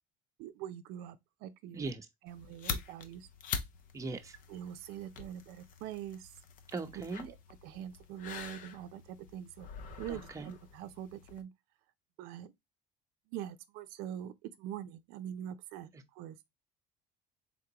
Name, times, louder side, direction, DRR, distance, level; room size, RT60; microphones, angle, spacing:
voice 1, 0.4-1.9 2.2-3.3 4.5-6.3 7.2-7.3 7.6-9.7 10.0-11.5 12.2-12.5 13.3-16.4, right 10 dB, 85° right, 0.5 m, -44 dB
voice 2, 1.7-2.1 3.9-4.4 6.7-7.3 10.1-10.5 15.9-16.0, right 3 dB, 20° right, 0.8 m, -39 dB
sound 1, 2.3-11.4, left 6 dB, 60° left, 0.8 m, -45 dB
3.7 x 3.6 x 2.8 m
cardioid pair, 120°, 16 cm